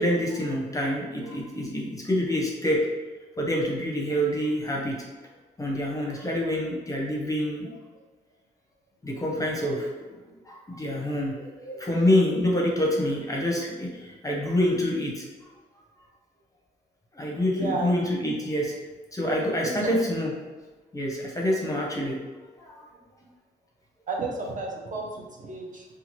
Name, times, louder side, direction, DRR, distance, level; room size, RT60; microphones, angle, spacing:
voice 1, 0.0-2.8 3.4-5.1 5.6-7.8 9.0-10.0 10.5-15.2 17.1-18.7 19.1-20.3 20.9-22.2 22.6-22.8, left 1 dB, 20° left, -2 dB, 0.7 m, -26 dB
voice 2, 17.5-17.9 19.8-19.9 24.1-25.9, right 3 dB, 45° right, -1 dB, 0.6 m, -32 dB
2.8 x 2.3 x 3.0 m, 1.3 s
cardioid pair, 95°, 18 cm